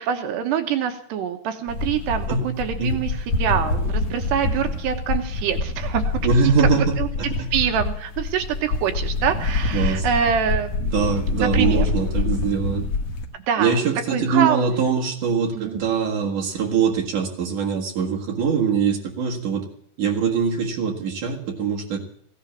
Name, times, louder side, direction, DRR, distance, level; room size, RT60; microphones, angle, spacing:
voice 1, 0.0-6.2 6.6-7.1 7.5-10.7 11.4-11.9 13.5-13.8 14.1-14.7 15.5-15.8, right 8 dB, 75° right, 6 dB, 3.0 m, -25 dB
sound 1, 1.7-13.3, left 3 dB, 60° left, 1.7 m, -26 dB
voice 2, 6.2-7.5 9.7-10.1 10.8-12.8 13.6-19.6 20.0-22.0, right 5 dB, 55° right, 0 dB, 2.7 m, -23 dB
16.5 x 11.0 x 7.3 m, 0.63 s
omnidirectional pair, 5.3 m